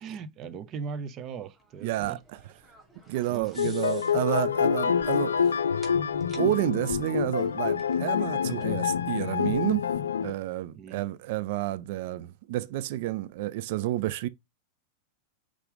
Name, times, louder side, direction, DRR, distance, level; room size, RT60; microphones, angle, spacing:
voice 1, 0.0-2.2 3.3-3.5 10.7-11.0, right 6 dB, 35° right, 0.8 m, -38 dB
sound 1, 1.6-10.1, equal, 10° right, 2.7 m, -52 dB
voice 2, 1.8-2.2 3.1-5.5 6.3-9.9 10.2-14.3, right 15 dB, 50° right, 0.4 m, -30 dB
sound 2, 3.6-10.3, left 7 dB, 70° left, 0.5 m, -27 dB
5.6 x 4.9 x 3.6 m
figure-of-eight pair, 90°, 0 cm